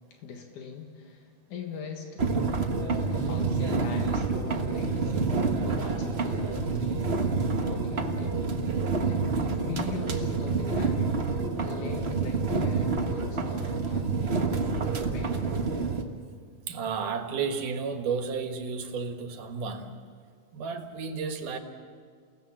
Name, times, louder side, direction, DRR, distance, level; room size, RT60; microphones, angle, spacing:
voice 1, 0.1-2.2 3.1-5.1 5.6-7.1 7.5-8.4 9.0-9.3 9.6-11.3 11.6-14.5 15.1-15.4, left 6 dB, 80° left, 3 dB, 3.1 m, -41 dB
sound 1, 2.2-16.0, right 4 dB, 50° right, 0.7 m, -28 dB
voice 2, 16.7-20.0 20.5-21.6, right 5 dB, 90° right, 6 dB, 3.1 m, -32 dB
29.0 x 17.5 x 7.5 m, 2.1 s
omnidirectional pair, 3.5 m